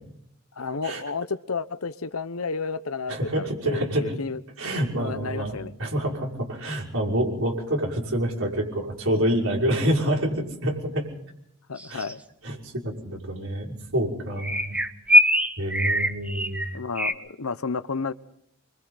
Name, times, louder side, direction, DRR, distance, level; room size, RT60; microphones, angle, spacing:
voice 1, 0.6-4.4 5.0-5.7 11.7-12.2 16.7-18.1, left 4 dB, 80° left, 1.1 m, -31 dB
voice 2, 3.1-4.2 4.6-11.1 11.9-12.0 12.4-14.8 15.6-16.6, equal, 70° right, 6.0 m, -27 dB
sound 1, 11.8-12.1 14.4-17.1, left 1 dB, 5° right, 1.2 m, -22 dB
26.5 x 24.5 x 4.1 m
head